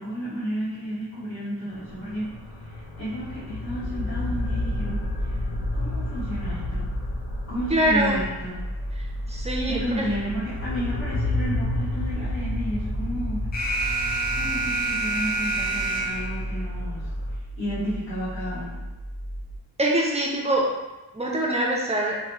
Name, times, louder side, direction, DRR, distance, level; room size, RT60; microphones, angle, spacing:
voice 1, 0.0-2.3 2.6-5.4 5.7-6.9 7.5-8.6 9.7-13.4 14.3-17.1 17.5-18.8, equal, 45° left, -15 dB, 1.3 m, -32 dB
sound 1, 1.7-17.3, left 2 dB, 85° left, 0.6 m, -32 dB
sound 2, 3.7-19.6, equal, 65° left, 1.2 m, -34 dB
voice 2, 7.7-8.2 9.3-10.1 19.8-20.7 21.1-22.2, right 1 dB, 15° right, -3 dB, 0.6 m, -24 dB
Alarm, 13.5-16.5, right 2 dB, 25° left, 0.6 m, -27 dB
2.9 x 2.1 x 3.1 m, 1.1 s
cardioid pair, 85°, 39 cm